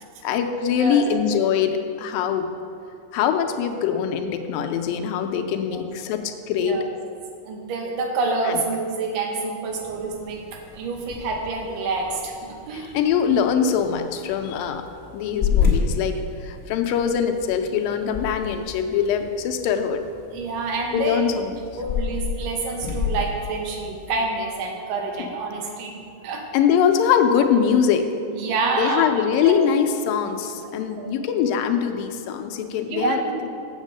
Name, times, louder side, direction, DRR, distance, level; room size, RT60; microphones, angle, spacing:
voice 1, 0.2-2.5 3.1-6.8 8.4-8.6 12.7-14.8 15.1-20.1 20.9-21.6 25.2-25.3 26.5-28.2 28.7-33.2, left 7 dB, 85° left, 6 dB, 2.4 m, -23 dB
voice 2, 7.5-12.9 20.3-21.2 21.8-26.5 28.3-29.1 29.4-29.6 30.7-31.1 32.9-33.4, right 3 dB, 80° right, 2 dB, 2.7 m, -27 dB
sound 1, 9.6-24.4, left 6 dB, 30° left, 1.2 m, -31 dB
7.4 x 7.2 x 7.4 m, 2.5 s
omnidirectional pair, 4.0 m